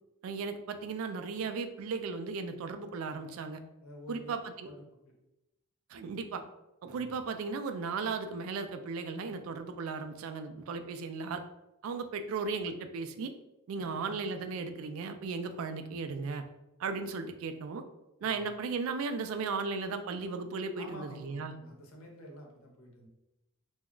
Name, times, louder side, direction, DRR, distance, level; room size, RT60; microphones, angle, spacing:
voice 1, 0.2-3.6 4.1-4.7 5.9-6.4 6.8-11.4 11.8-13.3 13.7-16.4 16.8-17.8 18.2-21.6, right 4 dB, 80° right, 8 dB, 0.3 m, -36 dB
voice 2, 3.8-4.4 4.6-4.8 6.8-7.2 13.8-14.1 18.2-18.6 20.8-23.1, left 1 dB, 90° left, 0 dB, 0.7 m, -50 dB
2.3 x 2.1 x 3.6 m, 0.92 s
head